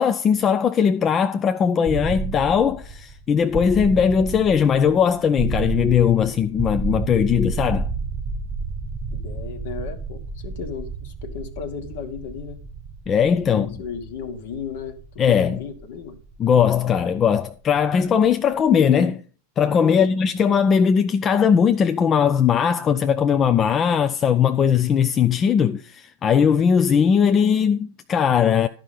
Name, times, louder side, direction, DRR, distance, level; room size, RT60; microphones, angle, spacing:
voice 1, 0.0-7.9 13.1-13.7 15.2-15.6 16.4-19.2 19.6-28.7, left 7 dB, 25° left, 0.4 m, -19 dB
sound 1, 1.8-17.7, right 4 dB, 10° right, 1.2 m, -31 dB
voice 2, 9.1-12.6 13.4-15.0 15.3-16.2 19.8-20.3, left 6 dB, 55° left, 1.3 m, -35 dB
12.0 x 5.3 x 5.4 m
figure-of-eight pair, 90°, 0 cm